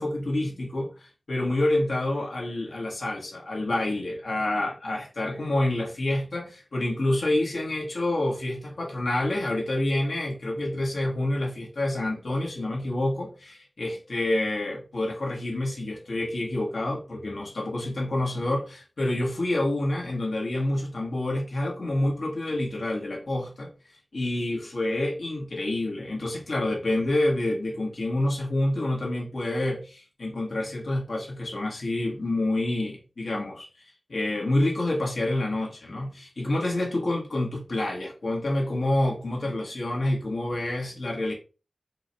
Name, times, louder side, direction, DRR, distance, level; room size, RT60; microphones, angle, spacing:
voice 1, 0.0-23.7 24.1-33.7 34.1-41.3, left 1 dB, 90° left, 1.3 m, -28 dB
4.5 x 2.2 x 4.0 m
wide cardioid pair, 75°, 0 cm